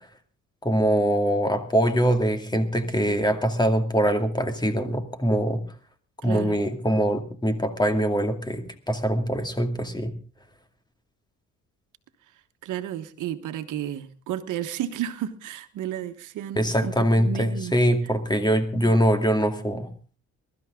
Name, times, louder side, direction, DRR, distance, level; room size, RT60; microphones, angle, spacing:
voice 1, 0.6-5.6 6.2-10.1 16.6-19.9, equal, 15° left, 7 dB, 2.3 m, -23 dB
voice 2, 6.2-6.5 12.6-17.7, right 11 dB, 80° right, 9 dB, 1.3 m, -32 dB
22.5 x 12.5 x 3.7 m, 0.39 s
cardioid pair, 90°, 30 cm